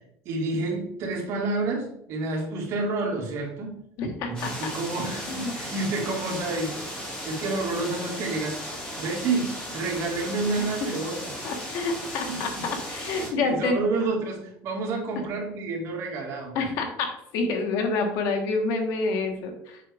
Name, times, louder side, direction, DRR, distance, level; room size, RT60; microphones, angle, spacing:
voice 1, 0.3-3.8 4.3-6.7 7.2-8.7 9.0-11.3 12.3-12.7 13.2-16.6, right 3 dB, 50° right, -1 dB, 2.1 m, -29 dB
voice 2, 4.0-4.5 5.3-5.5 10.6-10.7 11.4-13.8 16.5-19.8, left 3 dB, 60° left, 4 dB, 1.4 m, -28 dB
sound 1, 4.3-13.3, equal, 15° left, 2.4 m, -36 dB
7.5 x 5.6 x 3.5 m, 0.74 s
cardioid pair, 170°, 6 cm